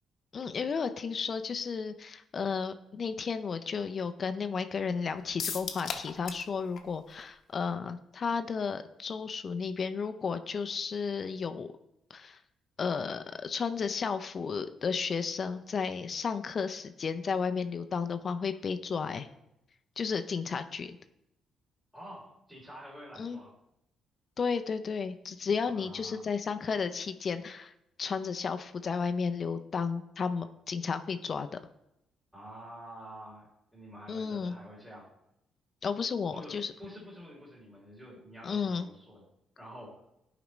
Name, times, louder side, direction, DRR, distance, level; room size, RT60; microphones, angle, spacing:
voice 1, 0.3-11.7 12.1-12.4 12.8-19.3 20.0-21.0 23.2-23.4 24.4-27.7 28.0-31.6 34.1-34.5 35.8-36.7 38.4-38.9, left 5 dB, 45° left, 9 dB, 0.4 m, -33 dB
sound 1, 5.4-6.5 6.8-6.9 7.2-7.3, left 7 dB, 65° left, 0.8 m, -36 dB
voice 2, 21.9-23.6 25.6-26.3 32.3-35.1 36.3-39.2 39.6-40.0, equal, 5° right, -6 dB, 2.7 m, -48 dB
11.5 x 5.0 x 3.1 m, 0.85 s
cardioid pair, 90°, 0 cm